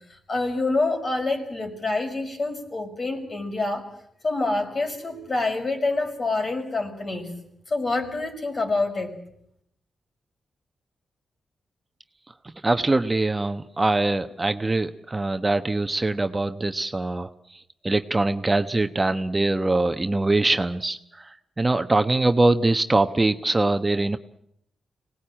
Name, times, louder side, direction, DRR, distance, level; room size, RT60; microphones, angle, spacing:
voice 1, 0.1-3.9 4.2-7.3 7.7-9.1, left 2 dB, 45° left, 4 dB, 5.7 m, -27 dB
voice 2, 12.6-17.3 17.8-21.0 21.6-24.2, right 2 dB, 25° right, 9 dB, 1.0 m, -23 dB
25.5 x 19.0 x 8.8 m, 0.76 s
cardioid pair, 65°, 0 cm